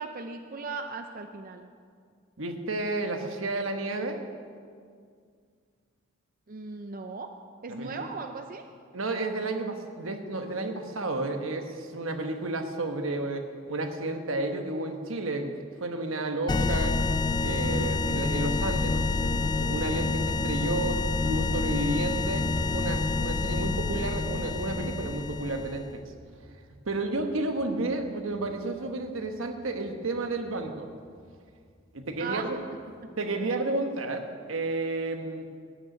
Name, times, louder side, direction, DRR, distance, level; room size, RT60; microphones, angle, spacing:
voice 1, 0.0-1.7 6.5-7.3 7.6-8.7 32.2-32.5, right 4 dB, 45° right, 6 dB, 0.5 m, -37 dB
voice 2, 2.4-4.2 7.7-8.1 8.9-17.0 17.4-22.5 22.7-26.0 26.9-30.9 31.9-32.6 33.2-35.5, right 2 dB, 80° right, 5 dB, 1.2 m, -32 dB
sound 1, 16.5-25.9, left 3 dB, 20° left, 0.3 m, -28 dB
sound 2, 22.6-33.0, equal, 45° left, 2.7 m, -46 dB
12.5 x 6.7 x 9.2 m, 2.1 s
head